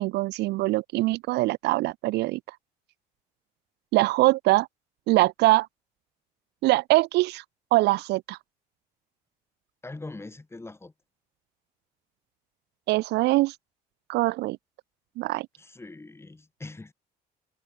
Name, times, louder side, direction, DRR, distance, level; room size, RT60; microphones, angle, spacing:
voice 1, 0.0-2.6 3.9-4.7 5.1-5.7 6.6-7.4 7.7-8.4 12.9-13.5 14.1-14.6 15.2-15.5, right 19 dB, 80° right, 0.7 m, -23 dB
voice 2, 9.8-10.9 15.6-16.9, left 2 dB, 15° left, 5.9 m, -42 dB
cardioid pair, 110°, 17 cm